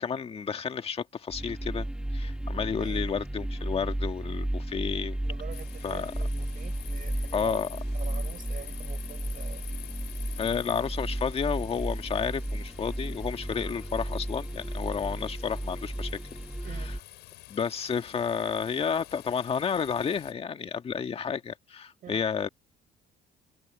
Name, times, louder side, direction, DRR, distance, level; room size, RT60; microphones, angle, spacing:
voice 1, 0.0-1.9 2.1-5.2 5.8-6.1 7.3-7.7 10.4-16.1 17.5-22.5, left 6 dB, 35° left, 1.7 m, -31 dB
sound 1, 1.3-17.0, right 1 dB, 5° right, 1.4 m, -34 dB
voice 2, 2.7-3.2 5.2-9.7 16.6-16.9 22.0-22.2, right 10 dB, 55° right, 5.3 m, -46 dB
sound 2, 5.5-20.3, left 17 dB, 85° left, 7.2 m, -48 dB
cardioid pair, 110°, 17 cm